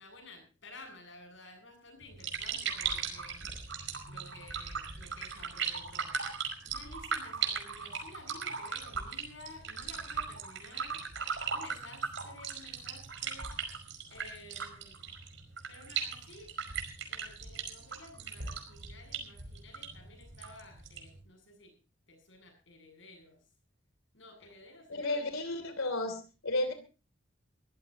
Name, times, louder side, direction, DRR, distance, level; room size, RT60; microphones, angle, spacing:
voice 1, 0.0-3.5 4.0-6.1 6.6-11.0 11.5-13.5 14.1-15.0 15.7-16.5 17.1-21.7 22.1-23.4 24.1-25.2, left 2 dB, 65° left, 5 dB, 8.0 m, -53 dB
sound 1, 2.0-21.2, right 6 dB, 65° right, 5.2 m, -38 dB
voice 2, 24.9-26.7, left 2 dB, 90° left, 9 dB, 3.0 m, -33 dB
23.0 x 15.5 x 2.9 m, 0.34 s
head